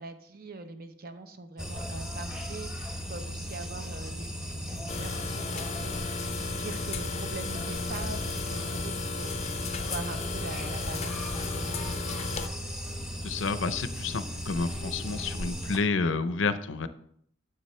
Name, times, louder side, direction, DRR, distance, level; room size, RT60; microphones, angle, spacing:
voice 1, 0.0-2.7 3.1-6.1 6.6-9.4 9.9-12.3, right 3 dB, 50° right, 8 dB, 0.8 m, -42 dB
sound 1, 1.6-15.8, equal, 5° right, 0.9 m, -36 dB
Fridge Hum, 4.9-12.5, left 4 dB, 35° left, 0.5 m, -35 dB
voice 2, 13.2-16.9, left 4 dB, 80° left, 12 dB, 0.6 m, -30 dB
9.3 x 7.5 x 3.2 m, 0.66 s
head